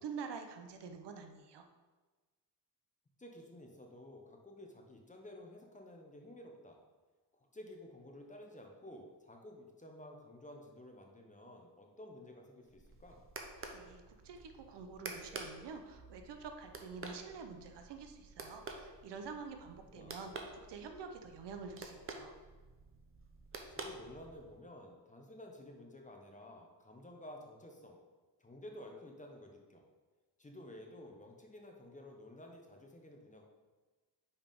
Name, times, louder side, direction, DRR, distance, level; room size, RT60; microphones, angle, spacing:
voice 1, 0.0-1.7 13.7-22.3, right 5 dB, 70° right, 6 dB, 0.8 m, -47 dB
voice 2, 3.2-6.8 7.3-13.2 19.9-20.4 23.8-28.0 28.4-29.8 30.4-33.4, left 1 dB, 15° left, 2 dB, 1.0 m, -53 dB
sound 1, 12.6-24.6, right 3 dB, 30° right, 0.9 m, -50 dB
5.6 x 4.7 x 5.3 m, 1.3 s
cardioid pair, 110°, 43 cm